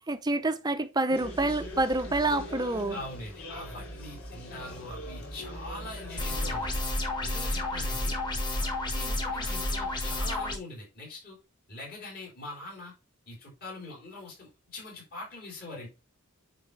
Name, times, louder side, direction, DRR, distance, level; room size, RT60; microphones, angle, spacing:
voice 1, 0.1-3.0, right 2 dB, 20° right, 0.6 m, -27 dB
sound 1, 1.1-6.8, left 1 dB, 85° left, 2.8 m, -41 dB
voice 2, 2.9-6.8 7.2-8.2 8.6-11.4 11.7-12.9 13.3-15.9, left 2 dB, 45° left, 4.1 m, -43 dB
sound 2, 6.2-10.6, left 1 dB, 20° left, 1.5 m, -30 dB
9.4 x 4.1 x 3.3 m
head